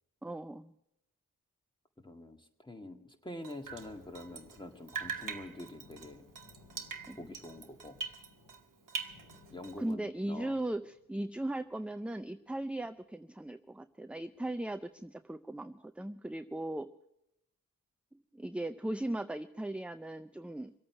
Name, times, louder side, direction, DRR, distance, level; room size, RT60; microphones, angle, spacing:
voice 1, 0.2-0.7 7.1-7.3 9.8-16.9 18.1-20.7, right 1 dB, 5° right, 10 dB, 0.4 m, -38 dB
voice 2, 2.0-6.2 7.2-8.0 9.5-10.6, left 1 dB, 15° left, 5 dB, 1.9 m, -46 dB
Drip, 3.4-4.6 4.9-8.6 8.9-9.9, right 5 dB, 60° right, 1.3 m, -42 dB
Thunder, 3.5-12.5 12.8-13.0 13.4-13.7 14.3-14.8, left 2 dB, 70° left, 3.6 m, -61 dB
23.5 x 8.6 x 5.9 m, 0.85 s
cardioid pair, 60°, 35 cm